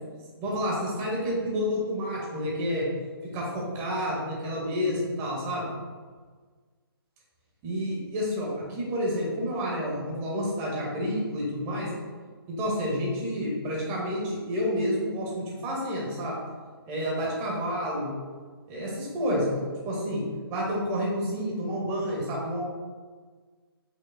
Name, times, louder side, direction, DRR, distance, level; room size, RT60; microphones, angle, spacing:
voice 1, 0.4-2.9 3.3-5.6 7.6-11.9 12.5-16.4 16.9-18.1 18.7-19.5 19.8-20.2 20.5-22.6, equal, 20° right, -4 dB, 1.8 m, -29 dB
8.4 x 6.0 x 2.3 m, 1.5 s
figure-of-eight pair, 140°, 13 cm